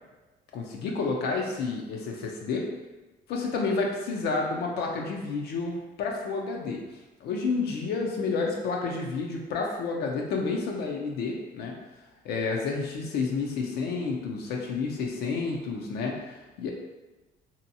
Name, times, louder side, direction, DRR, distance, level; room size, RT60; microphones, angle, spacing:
voice 1, 0.5-2.7 3.3-6.8 7.2-11.7 12.2-16.7, left 4 dB, 75° left, 0 dB, 0.5 m, -30 dB
2.7 x 2.2 x 2.7 m, 1.2 s
cardioid pair, 110°, 17 cm